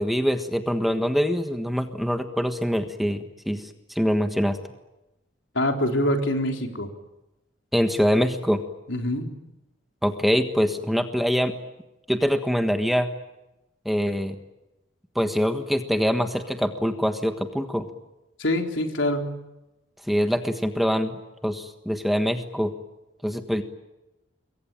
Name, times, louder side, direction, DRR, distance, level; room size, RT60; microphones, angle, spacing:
voice 1, 0.0-4.6 7.7-8.6 10.0-11.5 12.1-13.1 13.8-14.4 15.1-17.9 20.1-21.2 21.4-22.7 23.2-23.6, equal, ahead, 6 dB, 1.4 m, -24 dB
voice 2, 5.5-6.9 8.9-9.3 18.4-19.3, left 1 dB, 75° left, 3 dB, 3.9 m, -25 dB
26.5 x 23.0 x 9.1 m, 0.98 s
head